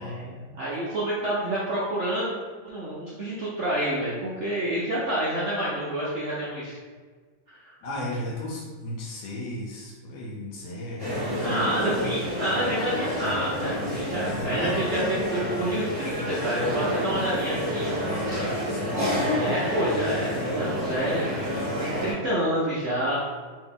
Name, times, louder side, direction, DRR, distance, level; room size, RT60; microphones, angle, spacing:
voice 1, 0.0-2.3 2.6-6.8 7.6-7.7 11.4-17.9 19.2-21.4 21.8-23.2, right 1 dB, 70° right, -8 dB, 0.6 m, -28 dB
voice 2, 7.8-12.0 14.4-14.8 18.1-19.3, left 1 dB, 80° left, -3 dB, 1.4 m, -35 dB
sound 1, 11.0-22.1, equal, 15° right, 1.2 m, -29 dB
3.1 x 2.8 x 3.7 m, 1.5 s
omnidirectional pair, 2.0 m